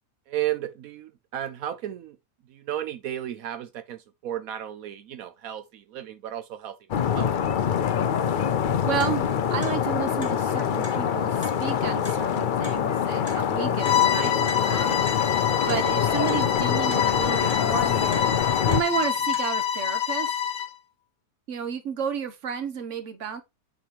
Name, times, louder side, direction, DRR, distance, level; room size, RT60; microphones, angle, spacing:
voice 1, 0.3-2.2 2.5-6.8 7.1-7.3, right 12 dB, 75° right, 1.1 m, -33 dB
sound 1, 6.9-18.8, left 8 dB, 60° left, 0.5 m, -25 dB
Clock, 8.5-19.4, left 2 dB, 35° left, 1.9 m, -46 dB
voice 2, 8.8-18.3 18.7-20.4 21.5-23.4, right 7 dB, 60° right, 1.4 m, -32 dB
Bowed string instrument, 13.8-20.7, left 9 dB, 80° left, 1.4 m, -26 dB
8.6 x 4.2 x 3.0 m
omnidirectional pair, 1.5 m